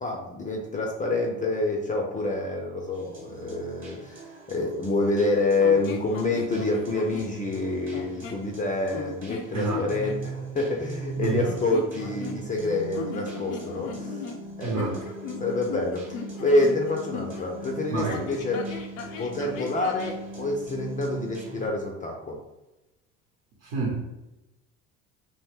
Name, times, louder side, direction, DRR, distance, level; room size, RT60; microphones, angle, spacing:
voice 1, 0.0-14.3 14.6-14.9 15.4-18.7 19.2-22.4, left 2 dB, 20° left, 1 dB, 0.4 m, -27 dB
sound 1, 2.9-21.7, right 2 dB, 30° right, 1.1 m, -40 dB
sound 2, 5.6-7.3 7.9-8.5 8.9-10.2 11.4-12.6 12.9-17.5 18.1-20.2, left 5 dB, 90° left, 0.5 m, -38 dB
voice 2, 9.5-9.9 11.2-11.5 14.6-15.0 17.9-18.3 23.6-24.1, right 3 dB, 50° right, -3 dB, 0.9 m, -28 dB
2.6 x 2.0 x 3.4 m, 0.98 s
hypercardioid pair, 75°, 39 cm